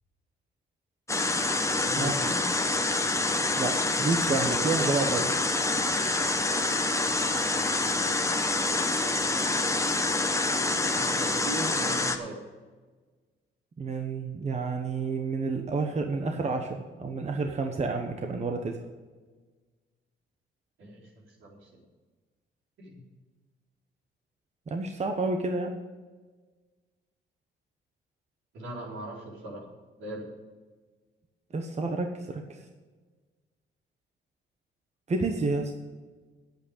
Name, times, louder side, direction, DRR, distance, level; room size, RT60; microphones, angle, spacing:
sound 1, 1.1-12.2, left 2 dB, 15° left, 1.0 m, -27 dB
voice 1, 1.8-2.4 8.9-9.6 10.4-12.4 20.8-21.7 22.8-23.0 28.5-29.6 30.0-30.3, right 1 dB, 75° right, -3 dB, 4.0 m, -40 dB
voice 2, 3.6-5.3 13.8-18.8 24.7-25.8 31.5-32.6 35.1-35.7, right 3 dB, 35° right, 4 dB, 1.1 m, -30 dB
8.9 x 8.2 x 8.4 m, 1.3 s
cardioid pair, 90°, 20 cm